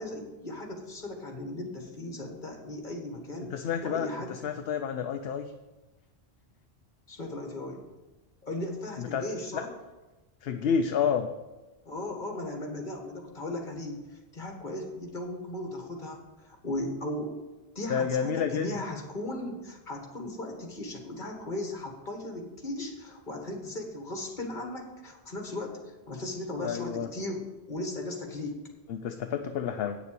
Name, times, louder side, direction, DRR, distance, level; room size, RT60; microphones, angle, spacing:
voice 1, 0.0-3.6 3.8-4.3 7.1-7.8 8.4-9.7 11.9-17.3 17.8-25.8 26.1-28.6, left 1 dB, 50° left, 2 dB, 1.9 m, -37 dB
voice 2, 3.5-5.5 9.0-9.2 9.5-9.6 10.4-11.3 17.9-18.7 26.6-27.1 28.9-30.0, left 7 dB, 70° left, 7 dB, 0.8 m, -29 dB
9.1 x 6.9 x 6.8 m, 1.1 s
omnidirectional pair, 1.1 m